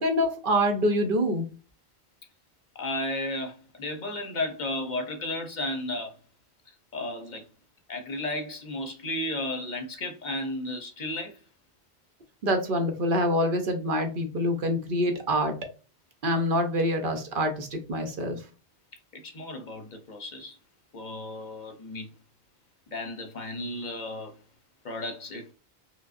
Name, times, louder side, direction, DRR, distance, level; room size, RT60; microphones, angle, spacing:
voice 1, 0.0-1.5 12.4-15.6 16.2-18.4, equal, 60° right, 0.8 m, -26 dB
voice 2, 2.8-6.1 6.9-7.4 7.9-11.3 19.1-20.5 20.9-22.1 22.9-24.3 24.8-25.5, left 1 dB, 50° left, 0.7 m, -33 dB
4.8 x 2.0 x 2.4 m
omnidirectional pair, 1.1 m